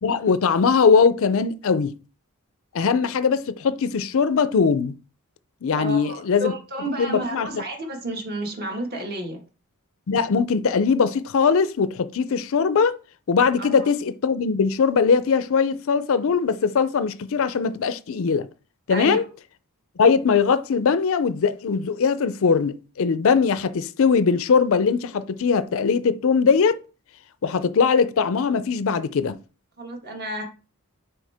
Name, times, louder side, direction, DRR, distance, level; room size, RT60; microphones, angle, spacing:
voice 1, 0.0-2.0 2.7-4.9 5.6-6.5 7.0-7.6 10.1-13.0 13.3-18.5 18.9-19.2 20.0-26.8 27.4-29.4, left 5 dB, 60° left, 0.4 m, -21 dB
voice 2, 5.8-9.4 13.6-13.9 18.9-19.2 29.8-30.4, right 1 dB, 45° right, 1.7 m, -31 dB
6.4 x 4.5 x 3.4 m
head